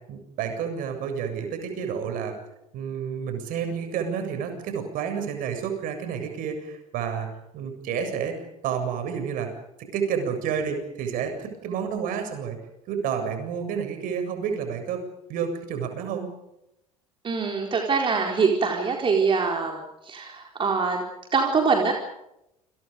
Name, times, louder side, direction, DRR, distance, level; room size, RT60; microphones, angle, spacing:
voice 1, 0.1-2.3 2.7-9.5 9.9-12.6 12.9-15.0 15.3-16.3, right 7 dB, 50° right, 6 dB, 7.5 m, -30 dB
voice 2, 17.2-21.0 21.3-21.9, right 5 dB, 25° right, 2 dB, 4.4 m, -24 dB
29.5 x 28.0 x 5.3 m, 0.85 s
figure-of-eight pair, 65°, 18 cm